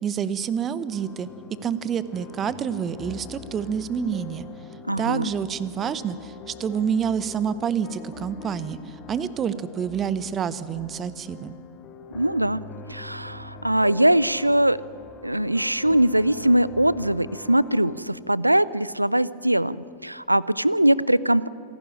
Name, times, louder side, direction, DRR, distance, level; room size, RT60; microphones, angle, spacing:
voice 1, 0.0-1.3 1.6-4.5 5.0-8.8 9.1-11.5, right 7 dB, 25° right, 16 dB, 0.9 m, -28 dB
sound 1, 0.9-18.0, left 5 dB, 30° left, 2.3 m, -43 dB
voice 2, 4.9-5.3 12.1-12.6 12.9-14.8 15.2-19.8 20.0-21.5, right 1 dB, 85° right, 21 dB, 0.5 m, -21 dB
26.5 x 12.0 x 10.0 m, 2.5 s
figure-of-eight pair, 90°, 0 cm